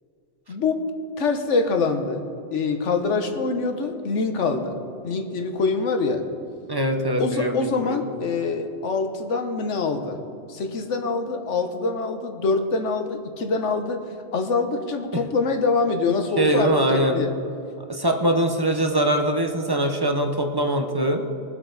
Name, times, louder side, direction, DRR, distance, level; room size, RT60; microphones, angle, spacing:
voice 1, 0.5-0.8 1.2-4.8 5.0-6.2 7.2-10.2 10.5-14.0 14.3-17.3, left 4 dB, 85° left, 6 dB, 1.4 m, -25 dB
voice 2, 6.7-8.0 15.1-15.2 16.4-17.2 17.9-21.2, right 1 dB, 20° right, 4 dB, 0.8 m, -22 dB
21.5 x 7.8 x 4.0 m, 2.7 s
omnidirectional pair, 1.2 m